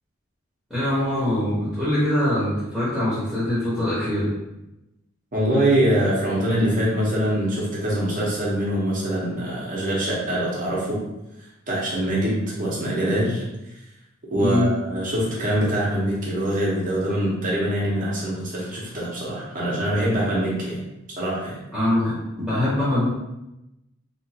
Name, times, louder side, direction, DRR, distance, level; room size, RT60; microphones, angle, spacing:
voice 1, 0.7-4.3 14.3-14.7 21.7-23.1, left 1 dB, ahead, -11 dB, 0.9 m, -23 dB
voice 2, 5.3-11.0 11.7-13.4 14.3-20.8 21.2-21.6, right 1 dB, 40° right, -6 dB, 0.8 m, -24 dB
2.8 x 2.4 x 2.8 m, 0.94 s
head